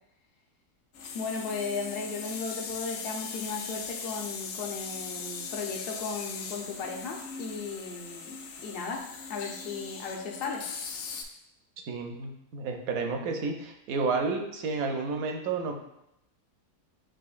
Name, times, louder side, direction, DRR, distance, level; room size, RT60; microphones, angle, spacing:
sound 1, 0.9-11.2, left 5 dB, 80° left, 1.1 m, -39 dB
voice 1, 1.1-9.0 9.3-10.7, left 4 dB, 55° left, 1 dB, 0.6 m, -36 dB
voice 2, 11.9-15.7, right 4 dB, 70° right, 4 dB, 1.0 m, -31 dB
7.6 x 2.5 x 2.4 m, 0.83 s
omnidirectional pair, 1.7 m